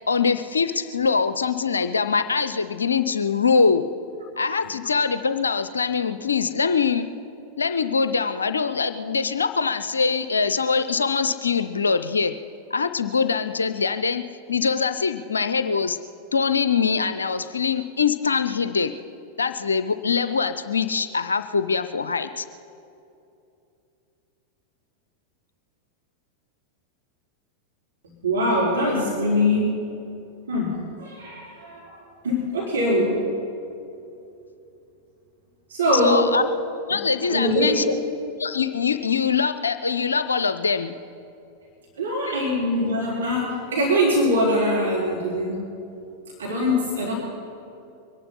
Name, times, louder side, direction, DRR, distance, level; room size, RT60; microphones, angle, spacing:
voice 1, 0.1-3.8 4.4-7.1 7.6-12.3 12.7-14.2 14.5-16.0 16.3-18.9 19.4-22.5 35.9-36.4 36.9-37.9 38.4-41.0 42.3-42.4, left 5 dB, 75° left, 11 dB, 0.5 m, -23 dB
voice 2, 28.2-29.8 30.5-31.9 32.2-33.2 35.7-36.3 37.2-37.8 42.0-45.6 46.4-47.1, left 1 dB, 65° right, -4 dB, 3.1 m, -23 dB
23.5 x 11.0 x 5.7 m, 2.7 s
figure-of-eight pair, 90°, 0 cm